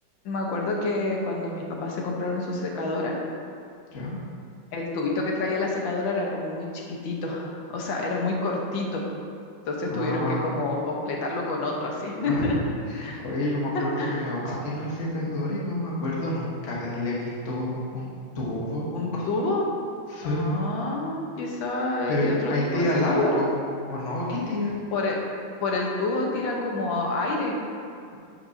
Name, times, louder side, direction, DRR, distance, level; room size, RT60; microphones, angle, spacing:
voice 1, 0.3-3.2 4.7-9.0 9.7-12.6 13.0-13.2 13.7-14.3 18.9-19.6 20.2-23.4 24.9-25.2 25.6-27.6, left 2 dB, 80° left, -1 dB, 1.8 m, -28 dB
voice 2, 9.9-10.4 12.2-12.5 12.9-18.1 18.3-18.9 19.1-19.3 20.1-20.6 22.1-23.6 23.9-24.7, left 1 dB, 45° left, -6 dB, 1.5 m, -28 dB
11.5 x 6.0 x 2.7 m, 2.3 s
omnidirectional pair, 2.1 m